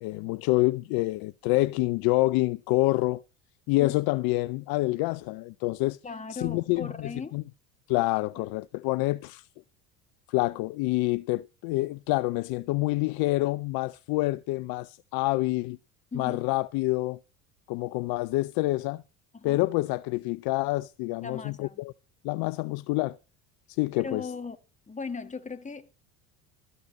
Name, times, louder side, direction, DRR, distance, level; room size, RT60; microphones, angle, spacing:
voice 1, 0.0-3.2 3.7-6.0 6.3-7.4 7.9-9.5 10.3-15.8 16.1-17.2 17.7-19.0 19.4-21.9 22.2-23.2 23.7-24.3, left 20 dB, 55° left, 0.5 m, -27 dB
voice 2, 6.0-7.4 8.4-8.5 16.1-16.4 19.3-19.6 21.2-21.8 23.9-24.6 24.9-25.9, left 4 dB, 15° left, 1.6 m, -38 dB
13.5 x 5.5 x 8.4 m
hypercardioid pair, 80°, 45 cm